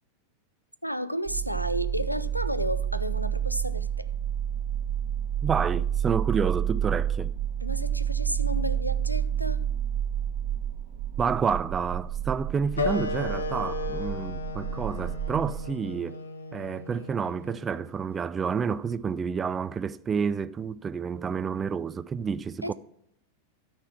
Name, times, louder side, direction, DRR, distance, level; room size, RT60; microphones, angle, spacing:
voice 1, 0.8-4.1 7.6-9.7 22.6-22.7, equal, 90° left, 0.4 m, -32 dB
sound 1, 1.3-15.7, right 9 dB, 50° right, 0.9 m, -30 dB
voice 2, 5.4-7.3 11.2-16.2 16.5-22.7, right 6 dB, 20° right, 0.4 m, -29 dB
Wind instrument woodwind instrument, 12.8-17.9, left 3 dB, 70° left, 0.8 m, -34 dB
13.0 x 4.4 x 6.0 m
figure-of-eight pair, 90°, 0 cm